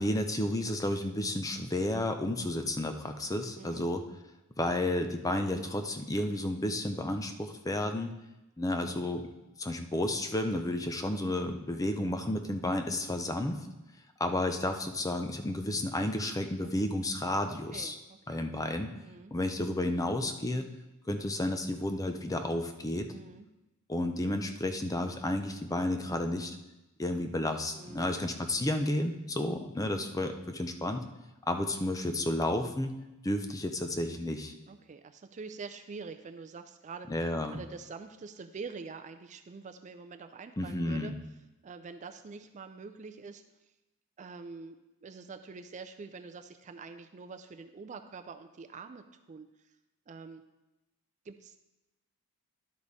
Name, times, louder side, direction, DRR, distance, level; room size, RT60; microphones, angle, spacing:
voice 1, 0.0-4.0 4.6-8.1 8.6-9.2 9.6-13.6 14.2-18.0 18.3-18.9 19.3-20.7 21.1-23.1 23.9-26.5 27.0-31.0 31.5-32.9 33.2-34.5 37.1-37.6 40.6-41.1, left 1 dB, 15° left, 6 dB, 0.5 m, -32 dB
voice 2, 3.6-3.9 16.6-16.7 17.5-18.4 19.0-19.3 23.1-23.5 27.7-28.2 29.9-30.1 34.7-37.1 37.5-41.1 41.6-43.4 44.2-49.5 50.1-50.4 51.3-51.6, right 4 dB, 35° right, 8 dB, 0.4 m, -45 dB
11.0 x 5.1 x 4.1 m, 0.98 s
head